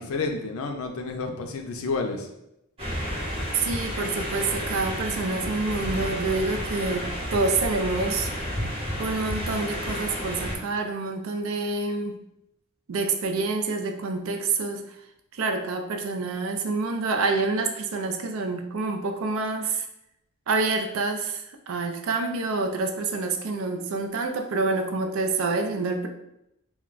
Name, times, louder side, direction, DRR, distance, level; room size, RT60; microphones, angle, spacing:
voice 1, 0.0-2.3, left 3 dB, 85° left, 4 dB, 0.4 m, -30 dB
sound 1, 2.8-10.6, equal, 25° right, 0.9 m, -31 dB
voice 2, 3.5-8.3 9.0-12.1 12.9-14.8 15.3-19.8 20.5-26.1, right 3 dB, 75° right, 5 dB, 0.4 m, -27 dB
2.3 x 2.2 x 3.8 m, 0.83 s
head